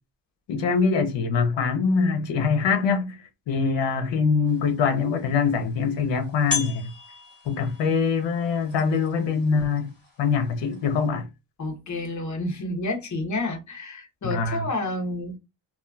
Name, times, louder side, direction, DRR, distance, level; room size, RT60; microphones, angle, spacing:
voice 1, 0.5-3.2 3.5-6.9 7.5-9.9 10.2-11.3 14.2-14.7, left 5 dB, 70° left, 0.9 m, -23 dB
sound 1, 4.5-11.1, left 4 dB, 15° left, 1.8 m, -38 dB
voice 2, 11.6-15.4, left 2 dB, 40° left, 1.0 m, -30 dB
2.9 x 2.4 x 2.3 m
cardioid pair, 130°, 46 cm